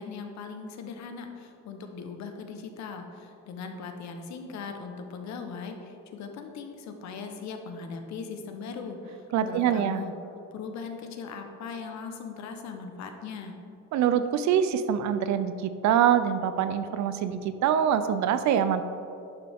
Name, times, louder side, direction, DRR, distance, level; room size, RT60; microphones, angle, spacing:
voice 1, 0.0-10.1 10.5-13.5, left 5 dB, 70° left, 5 dB, 1.1 m, -39 dB
voice 2, 9.3-10.0 13.9-18.8, right 9 dB, 70° right, 11 dB, 0.6 m, -24 dB
11.5 x 6.9 x 3.6 m, 2.7 s
cardioid pair, 170°, 29 cm